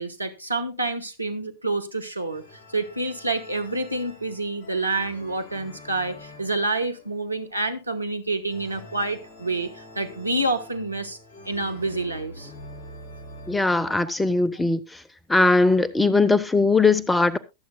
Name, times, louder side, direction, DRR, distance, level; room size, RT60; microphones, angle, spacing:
voice 1, 0.0-2.4 2.7-11.2 11.4-12.5, right 2 dB, 85° right, 1.2 m, -28 dB
sound 1, 2.2-13.6, left 1 dB, 50° left, 4.8 m, -45 dB
voice 2, 13.5-14.8 15.3-17.4, left 3 dB, 10° left, 0.8 m, -20 dB
22.0 x 7.7 x 2.2 m
figure-of-eight pair, 90°, 0 cm